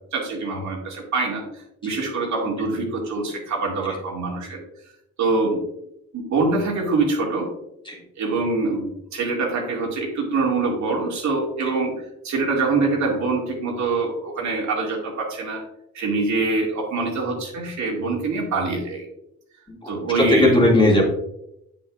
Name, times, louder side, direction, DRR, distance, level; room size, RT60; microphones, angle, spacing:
voice 1, 0.1-4.6 5.2-5.6 6.1-7.5 8.2-8.9 9.1-11.9 12.2-15.6 15.9-19.1 19.9-20.7, right 3 dB, 70° right, -1 dB, 2.3 m, -24 dB
voice 2, 19.7-21.0, left 1 dB, 15° left, -2 dB, 2.2 m, -18 dB
7.4 x 7.4 x 2.4 m, 0.81 s
cardioid pair, 90°, 30 cm